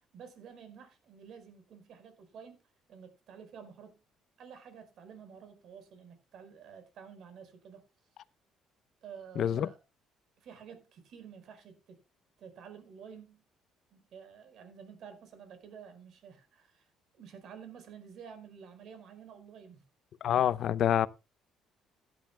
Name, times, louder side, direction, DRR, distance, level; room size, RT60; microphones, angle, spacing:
voice 1, 0.1-2.6 2.9-4.0 4.4-7.8 9.0-9.8 10.4-12.0 12.4-13.4 13.9-16.9 17.2-19.8, right 7 dB, 60° right, 4.6 m, -50 dB
voice 2, 9.4-9.7 20.2-21.1, left 10 dB, 55° left, 0.7 m, -26 dB
16.5 x 11.0 x 2.2 m
cardioid pair, 140°, 0 cm